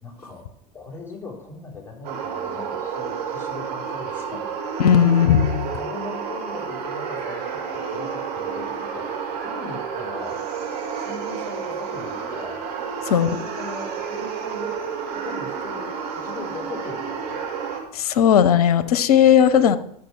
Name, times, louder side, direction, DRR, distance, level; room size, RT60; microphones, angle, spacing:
voice 1, 0.0-0.5 0.7-4.5 5.5-10.4 11.0-12.6 13.1-14.7 15.1-15.9 16.2-17.4, left 3 dB, 10° left, -1 dB, 3.8 m, -39 dB
sound 1, 2.0-17.8, right 6 dB, 50° right, 2.5 m, -30 dB
voice 2, 4.8-5.7 13.1-13.4 17.9-19.8, left 9 dB, 70° left, 10 dB, 0.8 m, -16 dB
11.0 x 7.3 x 4.7 m, 0.73 s
figure-of-eight pair, 75°, 20 cm